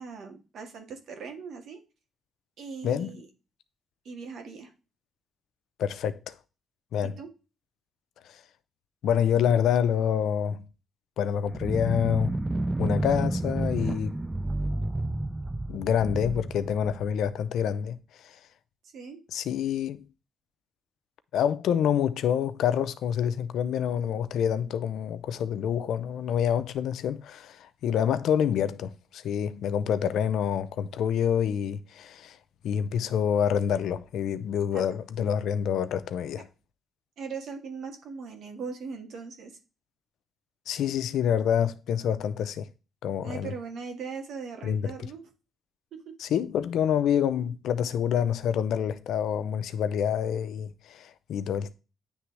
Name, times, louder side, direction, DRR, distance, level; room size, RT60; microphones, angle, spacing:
voice 1, 0.0-1.8 2.6-3.3 4.1-4.7 7.0-7.3 18.9-19.2 34.7-34.8 37.2-39.6 43.2-45.2 45.9-46.2, right 5 dB, 70° right, 1.8 m, -39 dB
voice 2, 2.8-3.2 5.8-6.3 6.9-7.2 8.3-8.4 9.0-10.7 11.2-12.4 12.8-14.2 15.7-18.4 19.3-20.0 21.3-32.4 32.6-36.5 40.7-42.7 43.0-43.5 44.6-44.8 46.2-51.7, left 8 dB, 75° left, 0.6 m, -27 dB
sound 1, 11.5-17.5, right 2 dB, 15° right, 0.3 m, -30 dB
9.4 x 3.4 x 3.2 m
cardioid pair, 90°, 0 cm